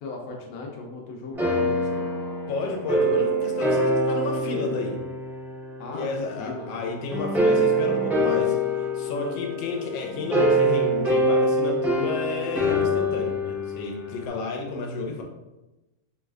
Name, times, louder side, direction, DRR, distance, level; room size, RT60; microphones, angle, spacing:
voice 1, 0.0-2.1 5.8-6.7 9.1-9.5, left 3 dB, 65° left, 0 dB, 1.0 m, -38 dB
sound 1, 1.3-6.0 7.1-14.3, equal, ahead, 0.6 m, -24 dB
voice 2, 2.5-5.0 5.9-15.2, left 3 dB, 85° left, 2 dB, 1.3 m, -31 dB
3.2 x 3.1 x 2.3 m, 1.0 s
omnidirectional pair, 1.9 m